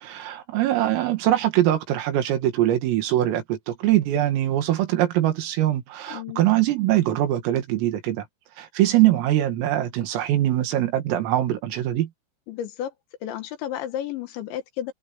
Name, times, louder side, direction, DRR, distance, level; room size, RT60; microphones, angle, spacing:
voice 1, 0.0-8.3 8.6-12.1, right 13 dB, 85° right, 4.8 m, -22 dB
voice 2, 6.1-6.5 12.5-12.9 13.2-14.9, left 11 dB, 70° left, 3.5 m, -32 dB
omnidirectional pair, 5.8 m